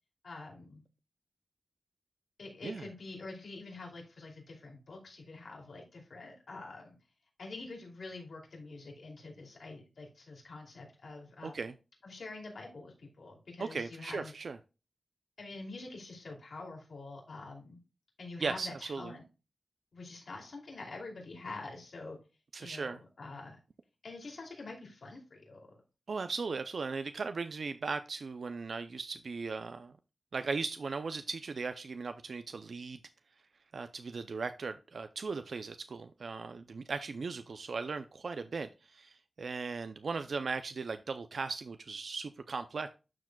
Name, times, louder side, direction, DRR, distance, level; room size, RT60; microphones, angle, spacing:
voice 1, 0.2-0.8 2.4-7.0 7.4-11.6 12.0-14.3 15.4-17.8 18.2-19.2 19.9-22.2 22.6-23.6 24.0-25.7, left 3 dB, 85° left, 0 dB, 2.6 m, -46 dB
voice 2, 11.4-11.7 13.6-14.6 18.4-19.1 22.5-23.0 26.1-29.9 30.3-33.0 33.7-43.0, right 4 dB, 75° right, 9 dB, 0.4 m, -38 dB
11.5 x 4.8 x 2.2 m, 0.30 s
wide cardioid pair, 115°, 0 cm